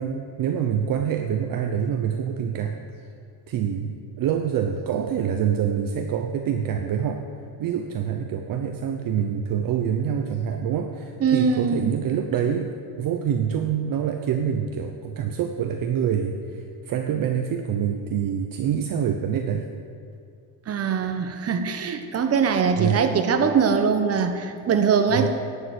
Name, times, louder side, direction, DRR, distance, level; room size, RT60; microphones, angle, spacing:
voice 1, 0.0-3.1 3.5-7.3 7.6-19.7 22.7-23.1 25.1-25.3, right 8 dB, 50° right, 5 dB, 0.8 m, -26 dB
voice 2, 11.2-11.9 20.7-25.3, right 6 dB, 35° right, 7 dB, 1.2 m, -22 dB
11.0 x 6.9 x 9.4 m, 2.5 s
cardioid pair, 130°, 42 cm